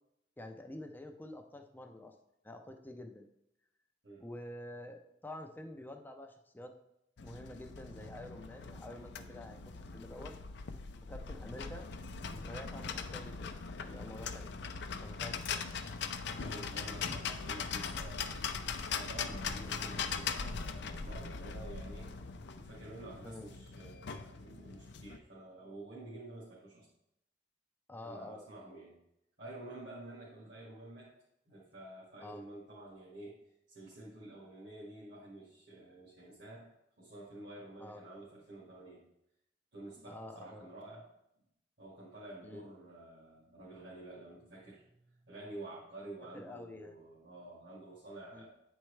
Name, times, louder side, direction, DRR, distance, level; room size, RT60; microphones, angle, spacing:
voice 1, 0.4-2.1 2.4-3.3 4.2-6.7 7.2-10.3 11.1-11.9 12.3-14.5 15.0-15.5 17.3-17.4 23.2-23.5 27.9-28.5 32.2-32.4 37.8-38.0 40.1-40.6 42.4-42.6 46.3-47.1 48.3-48.4, left 1 dB, 10° left, 4 dB, 0.5 m, -48 dB
sound 1, 7.2-25.2, left 5 dB, 65° left, 0.5 m, -41 dB
voice 2, 16.4-18.4 18.9-22.1 22.5-26.9 28.0-29.0 29.4-31.1 31.4-33.4 33.7-36.7 37.0-39.1 39.7-41.1 41.8-48.5, right 2 dB, 70° right, -9 dB, 2.0 m, -50 dB
9.1 x 4.4 x 3.2 m, 0.82 s
head